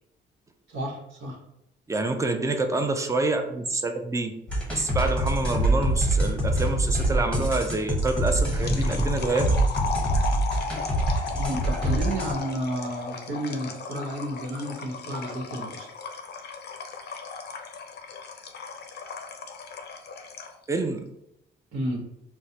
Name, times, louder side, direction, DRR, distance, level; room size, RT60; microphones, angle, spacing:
voice 1, 0.7-1.4 11.4-15.9 21.7-22.0, right 1 dB, 80° right, -1 dB, 1.1 m, -31 dB
voice 2, 1.9-4.3 4.7-9.5 20.7-21.1, right 2 dB, 15° right, 6 dB, 0.4 m, -27 dB
sound 1, 4.5-12.3, right 1 dB, 5° left, 0.9 m, -25 dB
sound 2, 8.0-20.6, left 5 dB, 55° left, 0.5 m, -36 dB
4.6 x 2.1 x 2.8 m, 0.82 s
cardioid pair, 90°, 20 cm